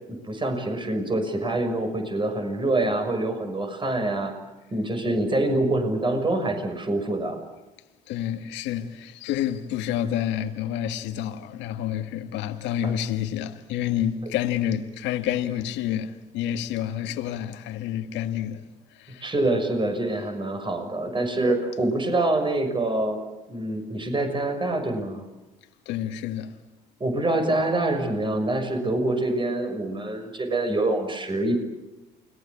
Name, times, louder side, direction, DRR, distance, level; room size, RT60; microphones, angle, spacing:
voice 1, 0.2-4.3 4.7-7.4 19.2-23.2 23.5-25.2 27.0-31.6, right 2 dB, 25° right, 6.4 m, -25 dB
voice 2, 8.1-18.6 18.9-19.3 25.9-26.6, left 10 dB, 80° left, 1.8 m, -29 dB
29.5 x 21.0 x 8.6 m
supercardioid pair, 75°, 19 cm